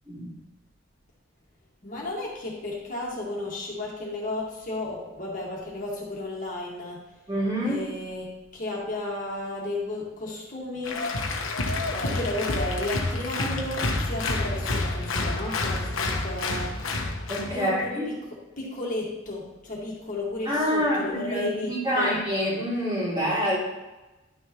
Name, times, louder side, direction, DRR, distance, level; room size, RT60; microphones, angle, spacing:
voice 1, 1.8-7.0 7.6-11.0 11.9-16.8 17.5-18.1 18.6-22.2, left 2 dB, 40° left, -3 dB, 1.8 m, -33 dB
voice 2, 7.3-7.9 17.3-18.0 20.5-23.6, equal, 20° right, -6 dB, 2.5 m, -26 dB
Applause, 10.8-17.5, left 2 dB, 85° left, 1.2 m, -28 dB
11.0 x 6.5 x 3.0 m, 1.1 s
head